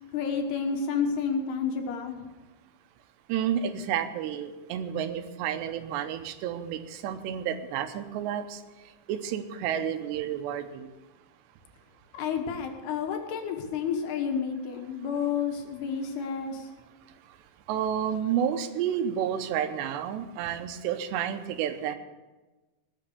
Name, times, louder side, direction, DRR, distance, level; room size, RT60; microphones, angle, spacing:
voice 1, 0.1-2.3 12.1-16.7, left 6 dB, 75° left, 4 dB, 3.2 m, -30 dB
voice 2, 3.3-8.6 9.1-10.9 17.7-22.0, right 9 dB, 85° right, 9 dB, 2.9 m, -30 dB
19.5 x 6.5 x 6.7 m, 1.2 s
omnidirectional pair, 5.0 m